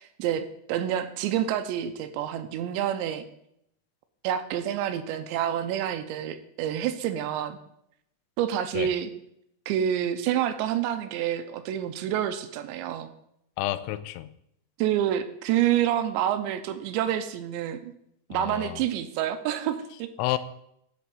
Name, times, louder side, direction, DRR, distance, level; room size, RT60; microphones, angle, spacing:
voice 1, 0.0-3.3 4.2-7.6 8.4-9.1 9.7-13.1 14.8-17.9 18.3-20.4, right 10 dB, 80° right, 9 dB, 2.7 m, -28 dB
voice 2, 13.6-14.3 18.3-18.8 20.2-20.4, left 15 dB, 90° left, 13 dB, 3.0 m, -30 dB
12.0 x 4.1 x 7.7 m, 0.75 s
omnidirectional pair, 5.2 m